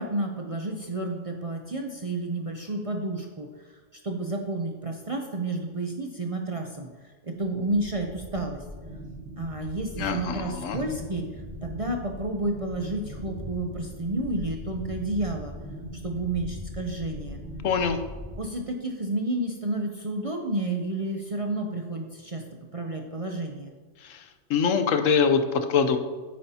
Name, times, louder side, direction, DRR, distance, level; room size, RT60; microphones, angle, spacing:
voice 1, 0.0-3.5 3.9-8.6 9.4-11.3 11.6-15.5 16.0-17.4 18.4-22.4 22.7-23.7, right 2 dB, 40° right, 2 dB, 0.5 m, -31 dB
sound 1, 7.5-18.4, equal, ahead, 2.0 m, -40 dB
voice 2, 10.0-10.8 17.6-18.0 24.0-26.0, left 6 dB, 85° left, 8 dB, 1.1 m, -24 dB
9.3 x 8.5 x 2.8 m, 1.4 s
omnidirectional pair, 1.3 m